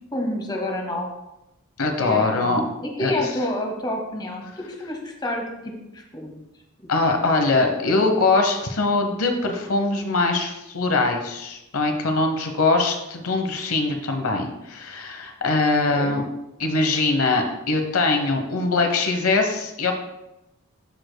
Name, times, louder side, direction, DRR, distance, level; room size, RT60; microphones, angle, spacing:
voice 1, 0.1-1.1 2.0-6.4 15.9-16.2, left 1 dB, 20° left, 1 dB, 1.0 m, -29 dB
voice 2, 1.8-2.6 3.0-3.1 6.9-16.2 16.6-19.9, left 3 dB, 80° left, 4 dB, 0.9 m, -22 dB
12.5 x 5.1 x 2.2 m, 0.92 s
head